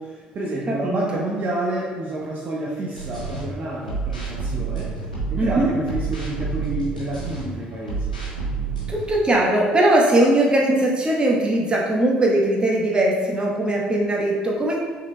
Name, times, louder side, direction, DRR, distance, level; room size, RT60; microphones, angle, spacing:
voice 1, 0.0-4.9 5.3-8.2, right 1 dB, 40° right, -4 dB, 0.7 m, -29 dB
voice 2, 0.7-1.2 5.4-5.7 8.9-14.8, right 1 dB, 20° right, -3 dB, 1.1 m, -20 dB
sound 1, 2.9-3.4 3.9-7.4 7.8-9.1, right 5 dB, 90° left, 0.9 m, -28 dB
6.1 x 3.8 x 2.3 m, 1.5 s
figure-of-eight pair, 55°, 4 cm